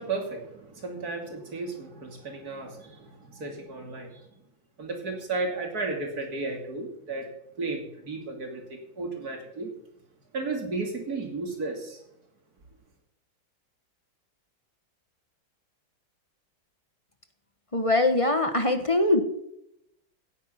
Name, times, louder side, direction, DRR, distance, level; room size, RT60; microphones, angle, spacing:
voice 1, 0.0-4.2 4.8-7.3 7.6-9.7 10.3-12.0, right 3 dB, 50° right, 3 dB, 3.2 m, -34 dB
voice 2, 17.7-19.2, left 2 dB, 20° left, 7 dB, 1.2 m, -22 dB
16.5 x 9.8 x 5.8 m, 0.79 s
omnidirectional pair, 2.1 m